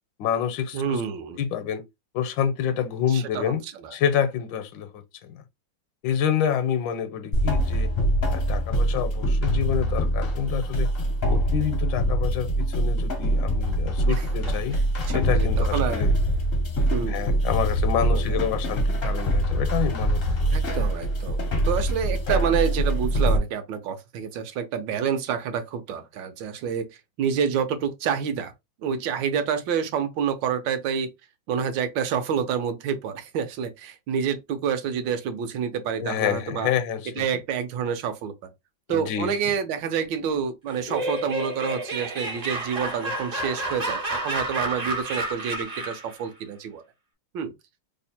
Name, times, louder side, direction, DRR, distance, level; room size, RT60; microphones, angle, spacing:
voice 1, 0.2-1.0 1.4-1.8 2.1-3.6 3.9-5.4 6.0-7.9 8.3-10.9 11.3-14.8 15.1-16.1 17.1-20.5 36.0-37.3 38.9-39.5, left 8 dB, 80° left, 1.3 m, -28 dB
voice 2, 0.7-1.4 3.1-3.5 3.8-3.9 15.1-16.1 16.9-17.3 18.1-18.4 20.5-26.9 27.2-28.5 28.8-31.1 31.5-36.7 37.2-38.5 38.9-46.8 47.3-47.5, right 7 dB, 80° right, 1.4 m, -28 dB
sound 1, 7.3-23.4, right 1 dB, 60° left, 0.6 m, -24 dB
Laughter, 40.7-46.1, right 1 dB, 40° right, 0.6 m, -30 dB
3.4 x 2.1 x 4.2 m
omnidirectional pair, 2.1 m